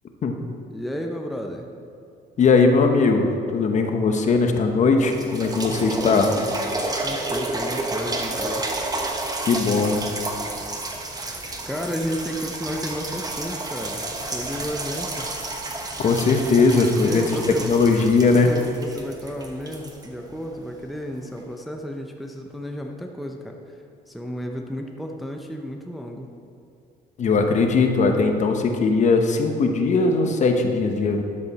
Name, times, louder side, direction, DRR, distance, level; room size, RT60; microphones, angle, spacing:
voice 1, 0.7-1.7 5.5-6.5 6.8-8.8 11.3-15.3 17.0-17.7 18.2-23.8 24.1-26.3, equal, ahead, 2 dB, 0.6 m, -33 dB
voice 2, 2.4-6.3 9.5-10.0 16.0-18.5 27.2-31.2, left 4 dB, 45° left, 4 dB, 1.0 m, -19 dB
sound 1, 4.5-4.6 5.0-20.7 21.4-21.5, right 2 dB, 20° right, 1.1 m, -31 dB
11.0 x 7.5 x 4.2 m, 2.5 s
cardioid pair, 110°, 17 cm